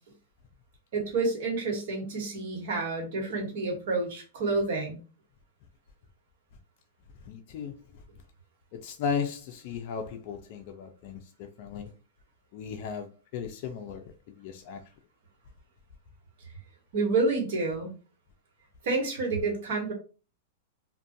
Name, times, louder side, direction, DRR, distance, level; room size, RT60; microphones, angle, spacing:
voice 1, 0.9-5.0 16.9-17.9 18.8-19.9, right 3 dB, 65° right, 1.0 m, -29 dB
voice 2, 7.3-7.8 8.7-11.9 12.5-13.1 13.3-14.0 14.4-14.8, left 6 dB, 50° left, 0.4 m, -35 dB
2.4 x 2.2 x 2.6 m
hypercardioid pair, 130°, 0 cm